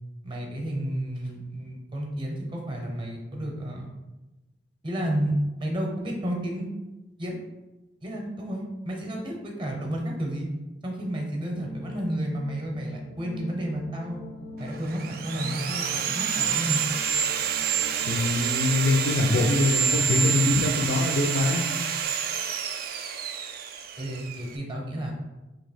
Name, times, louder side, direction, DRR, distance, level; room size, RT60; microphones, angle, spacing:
voice 1, 0.2-3.9 4.8-6.7 7.2-7.4 8.0-10.5 10.8-14.2 14.6-16.8 24.0-25.1, right 1 dB, 25° right, 0 dB, 0.7 m, -31 dB
sound 1, 11.5-19.2, left 2 dB, 85° left, 0.8 m, -42 dB
Sawing, 14.7-24.5, right 7 dB, 50° right, 0.3 m, -28 dB
voice 2, 18.1-21.7, left 2 dB, 60° left, 4 dB, 0.4 m, -24 dB
2.9 x 2.7 x 4.2 m, 1.1 s
head